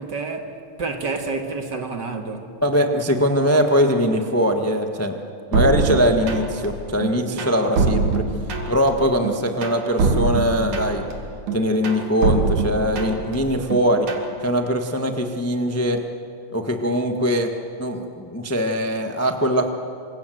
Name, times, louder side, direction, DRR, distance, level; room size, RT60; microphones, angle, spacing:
voice 1, 0.0-2.6, right 3 dB, 40° right, 2.0 m, -29 dB
voice 2, 2.6-5.1 5.5-8.2 8.6-11.0 11.5-14.1 14.4-16.0 16.5-17.5 17.8-19.7, equal, 25° left, 0.3 m, -21 dB
sound 1, 5.5-6.7 7.0-8.9 9.2-11.1 11.5-13.4 13.7-14.3, right 4 dB, 90° right, 3.9 m, -23 dB
27.5 x 26.0 x 7.9 m
omnidirectional pair, 3.3 m